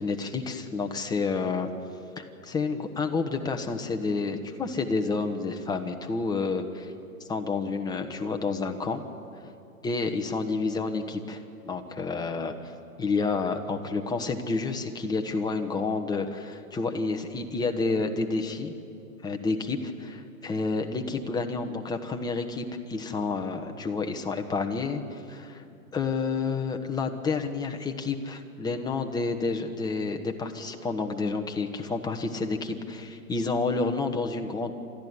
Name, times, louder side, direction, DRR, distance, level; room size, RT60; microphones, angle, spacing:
voice 1, 0.0-1.7 2.2-6.9 7.3-9.0 9.8-12.7 13.0-18.7 19.2-25.6 25.9-34.7, left 4 dB, 10° left, 5 dB, 1.3 m, -29 dB
29.5 x 13.0 x 9.8 m, 2.6 s
hypercardioid pair, 120°, 44 cm